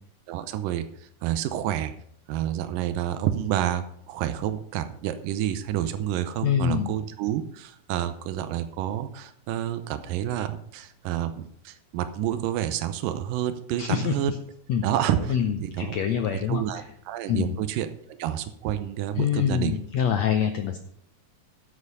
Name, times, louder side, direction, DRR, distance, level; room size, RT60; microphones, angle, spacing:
voice 1, 0.3-1.9 2.3-14.3 14.8-19.8, right 11 dB, 85° right, 10 dB, 2.4 m, -29 dB
voice 2, 6.4-6.9 13.8-14.1 14.7-14.8 15.3-16.8 17.3-17.5 19.2-20.8, left 8 dB, 80° left, 6 dB, 1.6 m, -25 dB
11.0 x 8.2 x 5.5 m, 0.67 s
omnidirectional pair, 3.9 m